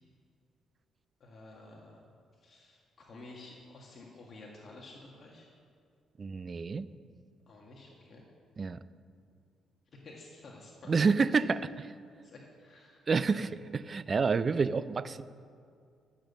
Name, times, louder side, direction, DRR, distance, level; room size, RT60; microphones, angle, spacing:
voice 1, 1.2-2.0 2.4-5.5 7.5-8.2 9.9-11.4 12.2-13.1 13.3-13.5, left 2 dB, 50° left, -2 dB, 1.7 m, -51 dB
voice 2, 6.2-6.9 8.6-8.8 10.9-11.7 13.1-15.2, right 5 dB, 40° right, 15 dB, 0.5 m, -28 dB
14.0 x 7.1 x 7.3 m, 2.3 s
cardioid pair, 90°, 0 cm